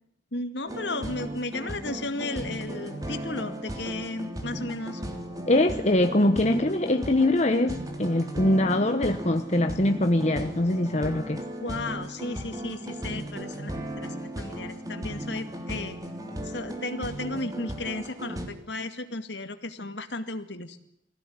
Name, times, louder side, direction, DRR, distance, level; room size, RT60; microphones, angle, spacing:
voice 1, 0.3-5.0 11.6-16.0 16.4-20.8, left 2 dB, 65° left, 2.3 m, -34 dB
sound 1, 0.7-18.5, right 1 dB, 20° right, 3.4 m, -36 dB
voice 2, 5.5-11.4, left 1 dB, 35° left, 1.2 m, -23 dB
24.0 x 16.5 x 9.6 m
head